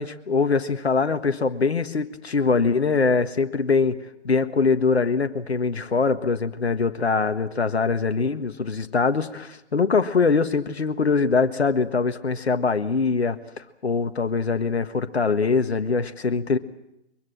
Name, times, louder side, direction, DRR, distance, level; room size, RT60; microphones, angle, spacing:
voice 1, 0.0-4.0 4.2-16.6, left 4 dB, 70° left, 10 dB, 1.6 m, -23 dB
24.0 x 23.0 x 7.6 m, 0.88 s
figure-of-eight pair, 135°, 34 cm